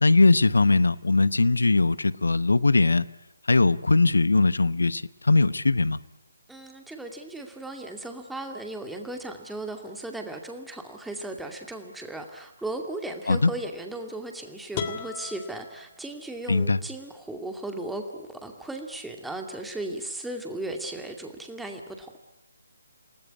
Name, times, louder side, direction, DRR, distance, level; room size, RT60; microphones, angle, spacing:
voice 1, 0.0-3.0 3.5-6.0 13.3-13.5 16.5-16.8, left 3 dB, 70° left, 1.0 m, -20 dB
voice 2, 6.5-18.0 18.4-22.1, right 2 dB, 5° right, 2.4 m, -36 dB
sound 1, 14.7-16.7, left 7 dB, 25° left, 2.9 m, -37 dB
28.5 x 19.5 x 9.8 m
figure-of-eight pair, 145°, 0 cm